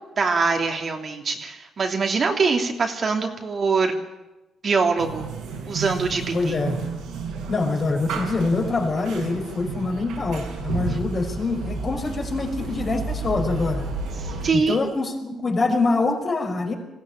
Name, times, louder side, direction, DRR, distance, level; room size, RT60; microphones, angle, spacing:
voice 1, 0.2-4.0 4.6-5.3 5.7-6.5 14.2-14.8 15.3-15.4, right 4 dB, 45° right, 2 dB, 3.0 m, -23 dB
sound 1, 5.0-14.5, right 4 dB, 85° right, 6.1 m, -32 dB
voice 2, 6.3-6.8 7.5-13.9 14.5-16.8, left 3 dB, 40° left, 2 dB, 5.5 m, -25 dB
21.0 x 15.5 x 8.9 m, 1.0 s
cardioid pair, 90°, 0 cm